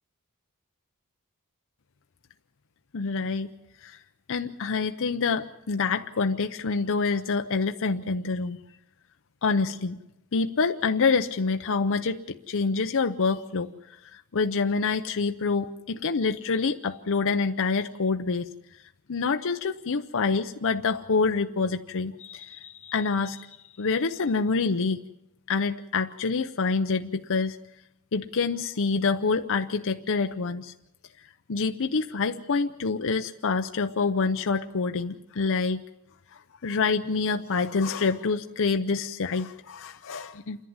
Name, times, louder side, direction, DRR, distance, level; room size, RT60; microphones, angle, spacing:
voice 1, 2.9-3.5 3.8-4.0 4.3-8.6 9.4-10.0 10.3-13.7 14.1-18.5 19.1-23.5 23.8-25.0 25.5-27.6 28.1-30.7 31.5-35.8 36.3-40.6, left 4 dB, 65° left, 6 dB, 0.7 m, -27 dB
28.0 x 11.0 x 9.6 m, 0.92 s
head